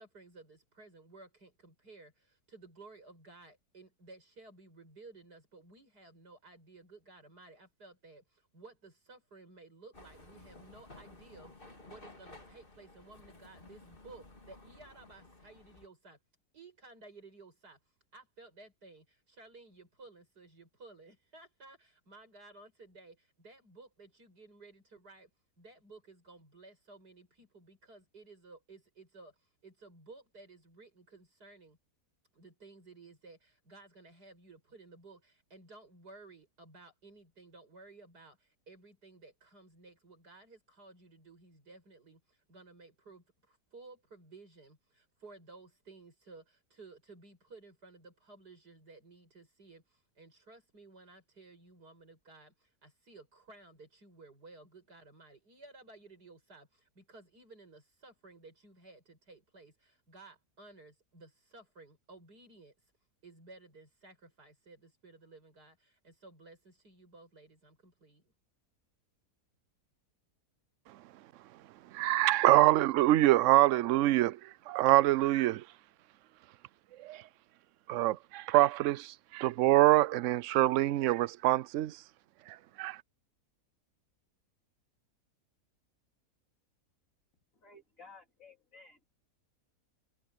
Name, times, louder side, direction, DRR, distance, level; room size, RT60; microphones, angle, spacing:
voice 1, 0.0-16.2 16.5-25.3 25.6-31.8 32.3-62.9 63.2-68.3, right 3 dB, 85° right, 8.3 m, -56 dB
sound 1, 9.9-15.9, left 2 dB, 35° left, 3.3 m, -55 dB
voice 2, 71.9-74.4 74.7-75.6 77.0-77.2 77.9-82.0 82.5-83.0, right 15 dB, 65° right, 0.8 m, -25 dB
voice 3, 87.6-89.0, left 3 dB, 55° left, 3.1 m, -55 dB
omnidirectional pair, 1.7 m